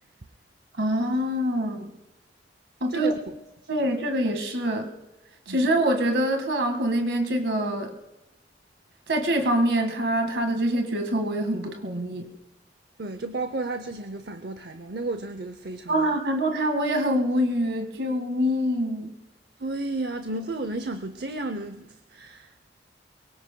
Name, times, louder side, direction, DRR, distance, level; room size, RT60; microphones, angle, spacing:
voice 1, 0.8-1.9 2.8-3.2 3.7-4.9 5.5-7.9 9.1-12.3 15.9-19.1, right 1 dB, 80° right, 5 dB, 1.9 m, -25 dB
voice 2, 2.9-3.4 5.5-5.7 13.0-16.2 19.6-22.7, right 2 dB, 60° right, 8 dB, 0.7 m, -33 dB
24.0 x 23.0 x 2.3 m, 0.98 s
head